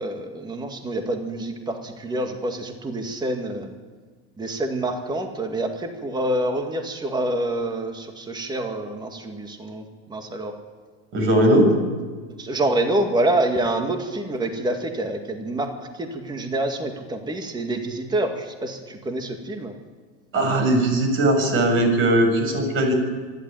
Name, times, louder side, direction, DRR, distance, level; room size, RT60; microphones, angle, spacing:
voice 1, 0.0-3.7 4.4-9.8 10.1-10.5 12.4-19.7, right 1 dB, 15° right, 5 dB, 2.0 m, -27 dB
voice 2, 11.1-11.7 20.3-22.9, right 1 dB, 40° right, 4 dB, 6.7 m, -19 dB
25.0 x 12.0 x 9.2 m, 1.5 s
supercardioid pair, 130°, 33 cm